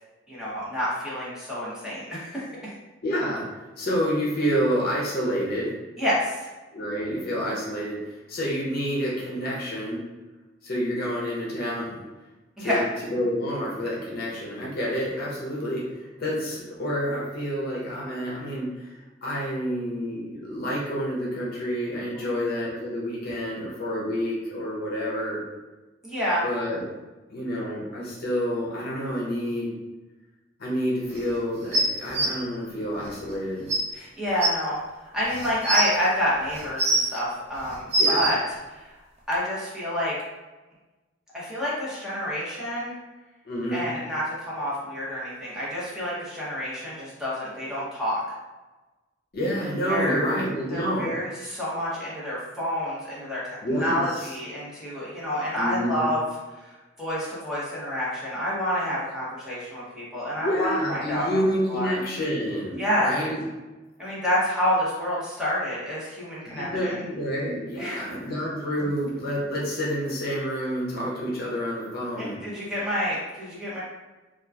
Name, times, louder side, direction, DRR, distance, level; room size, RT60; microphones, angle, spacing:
voice 1, 0.3-2.5 6.0-6.5 12.6-12.8 22.1-22.4 26.0-26.4 33.9-34.8 35.1-38.4 38.7-38.9 39.3-40.1 41.3-43.0 43.7-48.2 49.9-50.2 50.7-56.2 56.5-61.4 61.7-62.0 62.8-63.1 64.0-67.0 67.8-68.0 72.2-73.8, equal, 5° right, -9 dB, 0.8 m, -28 dB
voice 2, 3.0-3.5 3.8-5.7 6.7-10.0 10.6-12.0 12.6-12.8 13.1-18.9 19.2-25.4 26.4-26.8 27.3-29.8 30.6-33.7 38.0-38.3 43.4-43.9 49.3-51.1 53.6-54.4 55.6-56.1 60.4-63.4 66.5-72.4, equal, 55° left, -5 dB, 0.7 m, -28 dB
sound 1, 31.7-32.3 33.3-33.4 33.7-33.8 34.4-34.5 35.3-35.9 36.5-37.2 37.7-38.3 39.3-39.4, right 2 dB, 35° right, 0.4 m, -23 dB
2.9 x 2.4 x 2.3 m, 1.2 s
head